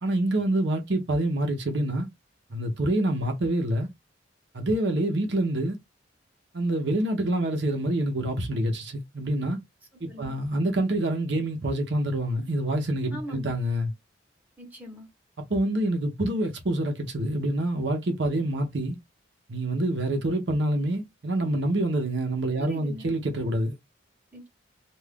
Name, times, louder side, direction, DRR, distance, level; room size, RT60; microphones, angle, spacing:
voice 1, 0.0-2.1 2.5-3.9 4.5-5.8 6.5-9.6 10.0-13.9 15.5-19.0 19.5-23.8, right 1 dB, 60° right, 0.7 m, -26 dB
voice 2, 13.1-13.6 14.6-15.1 22.6-23.1 24.3-24.5, equal, 10° right, 0.9 m, -41 dB
2.4 x 2.3 x 3.4 m
head